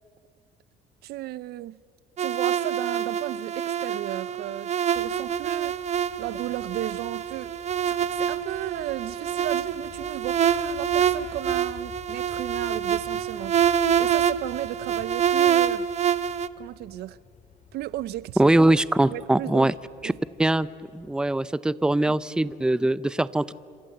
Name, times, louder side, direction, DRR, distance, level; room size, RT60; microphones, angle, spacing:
voice 1, 1.0-1.8 2.2-13.6 14.0-15.9 16.6-17.2 17.7-18.5 19.1-19.8 20.0-20.1 22.0-22.1, right 14 dB, 75° right, 0.6 m, -35 dB
sound 1, 2.2-16.5, right 9 dB, 40° right, 0.8 m, -26 dB
sound 2, 4.8-21.2, left 6 dB, 45° left, 3.0 m, -50 dB
voice 2, 18.4-19.7 20.0-20.1 20.4-20.7 20.9-23.5, right 1 dB, 5° right, 0.6 m, -22 dB
27.0 x 25.5 x 7.9 m
cardioid pair, 110°, 17 cm